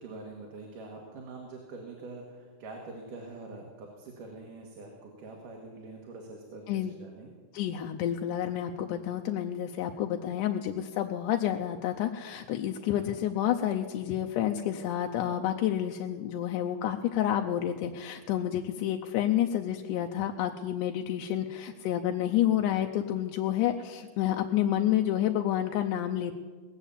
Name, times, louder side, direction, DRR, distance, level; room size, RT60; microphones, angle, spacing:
voice 1, 0.0-7.3 12.9-13.2 22.5-22.8, right 3 dB, 80° right, 0 dB, 3.3 m, -45 dB
voice 2, 7.5-26.4, left 11 dB, 85° left, 4 dB, 2.2 m, -29 dB
19.0 x 7.2 x 8.4 m, 1.4 s
omnidirectional pair, 3.7 m